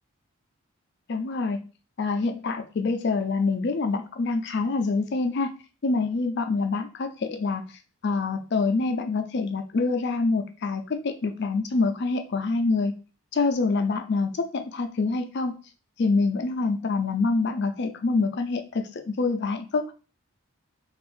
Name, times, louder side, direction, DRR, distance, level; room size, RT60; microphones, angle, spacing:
voice 1, 1.1-1.6 2.0-5.5 5.8-7.7 8.0-12.9 13.3-15.5 16.0-19.9, left 3 dB, 50° left, 6 dB, 0.4 m, -26 dB
2.6 x 2.5 x 3.6 m, 0.35 s
head